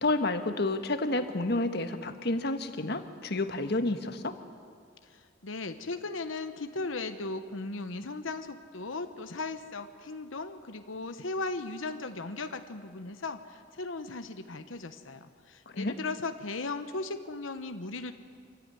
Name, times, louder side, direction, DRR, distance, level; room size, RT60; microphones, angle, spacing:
voice 1, 0.0-4.4 15.7-15.9, left 2 dB, 55° left, 8 dB, 1.5 m, -30 dB
voice 2, 5.1-18.1, left 3 dB, 85° left, 8 dB, 1.1 m, -37 dB
26.5 x 15.0 x 9.9 m, 2.1 s
head